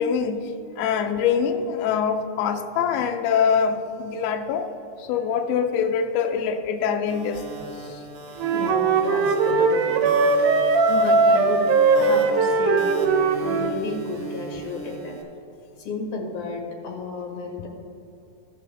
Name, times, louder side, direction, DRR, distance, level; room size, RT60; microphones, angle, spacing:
voice 1, 0.0-4.7 5.0-7.4 7.8-8.0, left 7 dB, 90° left, 6 dB, 1.4 m, -24 dB
sound 1, 7.1-15.2, right 3 dB, 55° right, 1.5 m, -38 dB
Wind instrument woodwind instrument, 8.4-13.8, right 4 dB, 80° right, 2.2 m, -20 dB
voice 2, 8.5-10.2 10.9-11.6 12.0-12.9 13.4-15.2 15.8-17.7, left 4 dB, 55° left, 0 dB, 2.1 m, -32 dB
15.5 x 6.3 x 3.4 m, 2.8 s
omnidirectional pair, 3.6 m